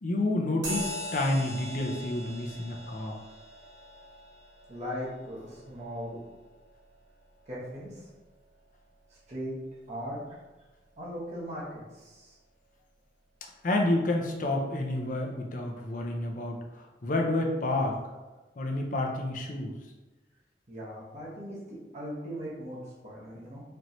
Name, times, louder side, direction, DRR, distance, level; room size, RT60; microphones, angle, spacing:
voice 1, 0.0-3.2 13.6-18.0 18.6-19.7, left 2 dB, 45° left, 2 dB, 0.6 m, -29 dB
sound 1, 0.6-8.5, equal, 70° right, 1.3 m, -42 dB
voice 2, 4.7-6.2 7.5-8.1 9.3-9.6 9.9-10.2 11.0-12.4 20.7-23.6, equal, 40° right, -6 dB, 0.9 m, -39 dB
4.4 x 3.0 x 2.6 m, 1.2 s
head